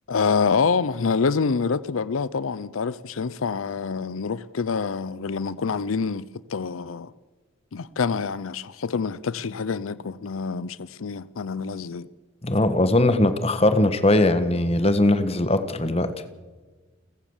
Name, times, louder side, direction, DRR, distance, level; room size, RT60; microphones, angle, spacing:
voice 1, 0.1-7.1 7.7-12.1, left 5 dB, 85° left, 0.6 m, -26 dB
voice 2, 12.4-16.1, left 1 dB, 30° left, 1.5 m, -20 dB
29.5 x 14.5 x 7.2 m
head